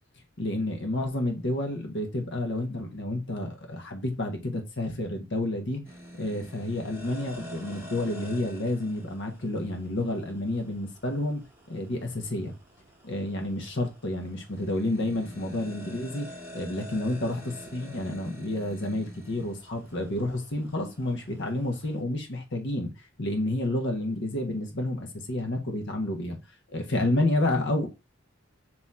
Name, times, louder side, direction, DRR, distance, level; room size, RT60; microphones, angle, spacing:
voice 1, 0.4-5.8 6.2-11.4 11.7-12.5 13.0-16.3 16.5-22.9 23.2-26.4 26.7-27.9, left 1 dB, 60° left, 1.2 m, -30 dB
sound 1, 5.8-22.0, equal, 10° right, 1.2 m, -48 dB
3.7 x 3.0 x 4.1 m
head